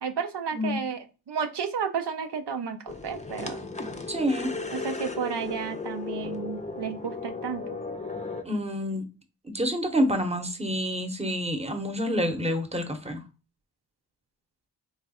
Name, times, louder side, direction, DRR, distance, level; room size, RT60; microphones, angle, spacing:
voice 1, 0.0-3.7 4.7-7.8, right 6 dB, 80° right, 6 dB, 0.5 m, -32 dB
sound 1, 2.9-8.4, left 3 dB, 20° left, 0.5 m, -35 dB
voice 2, 4.1-4.5 8.4-9.0 9.4-13.2, equal, 15° right, 6 dB, 0.8 m, -28 dB
3.2 x 2.3 x 4.1 m, 0.32 s
wide cardioid pair, 45°, 40 cm